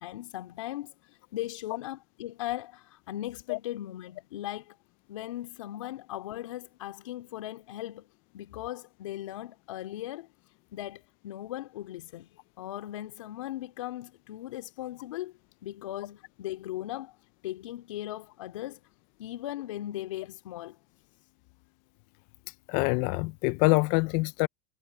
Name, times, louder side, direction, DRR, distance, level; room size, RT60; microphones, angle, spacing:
voice 1, 0.0-4.8 5.1-8.1 8.3-10.3 10.7-12.3 12.6-17.2 17.4-18.8 19.2-20.8, left 14 dB, 80° left, 2.7 m, -38 dB
voice 2, 22.7-24.5, left 26 dB, 55° left, 0.6 m, -25 dB
hypercardioid pair, 110°, 16 cm